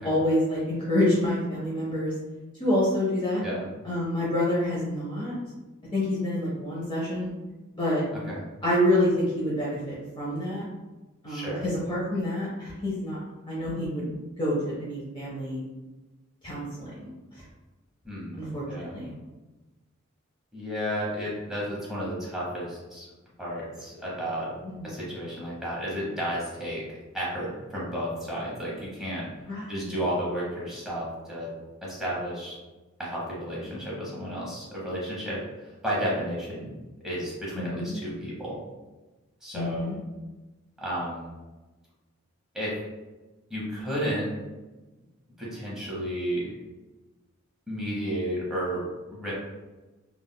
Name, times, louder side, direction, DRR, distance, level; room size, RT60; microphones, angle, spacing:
voice 1, 0.0-2.1 2.6-3.4 3.8-5.3 5.9-7.3 7.7-8.0 8.6-10.7 11.2-11.5 11.9-13.2 13.5-15.6 16.4-17.1 18.4-19.1 24.8-25.1 29.5-30.0 37.6-38.0 39.5-40.0, left 1 dB, 25° left, -7 dB, 0.6 m, -27 dB
voice 2, 11.3-11.6 18.0-18.4 18.7-18.9 20.5-23.1 23.4-24.5 24.8-26.8 27.1-29.3 29.7-31.5 31.8-32.6 33.0-36.7 37.0-38.6 39.4-39.9 40.8-41.3 42.5-42.8 43.5-44.3 45.4-46.5 47.7-48.8 49.1-49.3, equal, 5° right, -7 dB, 0.9 m, -32 dB
3.5 x 2.3 x 2.2 m, 1.1 s
head